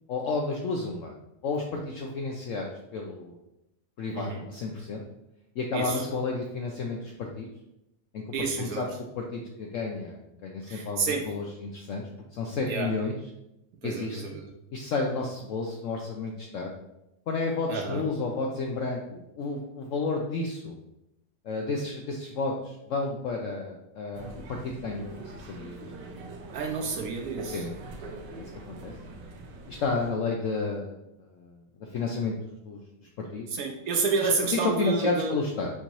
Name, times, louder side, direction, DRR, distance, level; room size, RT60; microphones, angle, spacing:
voice 1, 0.1-1.1 1.4-3.4 4.0-5.0 5.6-7.5 8.1-8.2 8.6-8.9 9.2-13.2 13.8-14.3 14.7-16.7 17.3-20.8 21.4-25.9 27.5-27.8 28.0-28.9 29.7-31.6 31.9-32.8 33.2-33.4 34.2-35.7, left 3 dB, 75° left, 0 dB, 0.7 m, -32 dB
voice 2, 4.1-4.5 5.7-6.0 8.3-8.8 10.7-11.2 12.7-12.9 13.8-14.5 17.7-18.0 26.5-27.6 33.5-35.3, right 4 dB, 70° right, 3 dB, 0.9 m, -29 dB
sound 1, 24.1-30.1, right 3 dB, 85° right, 1.3 m, -43 dB
4.5 x 3.9 x 2.9 m, 0.87 s
omnidirectional pair, 1.8 m